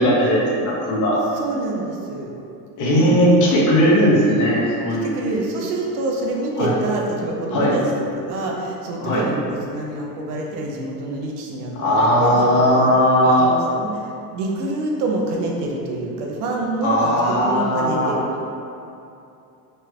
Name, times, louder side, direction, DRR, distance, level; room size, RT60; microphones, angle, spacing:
voice 1, 0.0-1.2 2.8-5.2 6.6-6.7 7.5-7.7 9.0-9.2 11.7-13.5 16.8-18.1, equal, 40° left, -5 dB, 0.9 m, -17 dB
voice 2, 1.3-2.3 2.8-3.2 4.9-7.8 8.1-12.9 13.2-18.5, right 2 dB, 75° right, -1 dB, 0.7 m, -27 dB
3.1 x 3.0 x 2.3 m, 2.7 s
hypercardioid pair, 90°, 45 cm